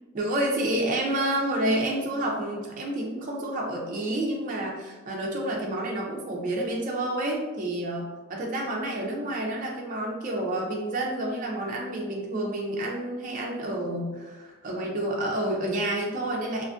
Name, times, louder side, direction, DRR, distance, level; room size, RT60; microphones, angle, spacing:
voice 1, 0.1-16.6, right 1 dB, 35° right, -1 dB, 0.3 m, -29 dB
2.5 x 2.4 x 2.3 m, 1.2 s
head